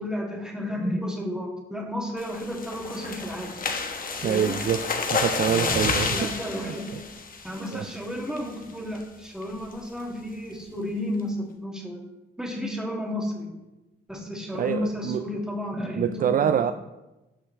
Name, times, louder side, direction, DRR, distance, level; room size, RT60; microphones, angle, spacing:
voice 1, 0.0-3.5 4.2-4.6 5.4-7.1 7.4-12.0 12.4-13.5 14.1-16.5, left 1 dB, 5° right, -1 dB, 2.4 m, -32 dB
sound 1, 2.2-7.9 8.4-8.6 9.0-9.1 9.4-9.7, left 4 dB, 45° left, 1.2 m, -30 dB
voice 2, 4.2-4.8 5.1-7.0 7.7-7.8 14.6-15.2 16.0-16.7, right 8 dB, 45° right, 10 dB, 0.4 m, -26 dB
15.5 x 5.6 x 3.3 m, 1.0 s
cardioid pair, 90°, 20 cm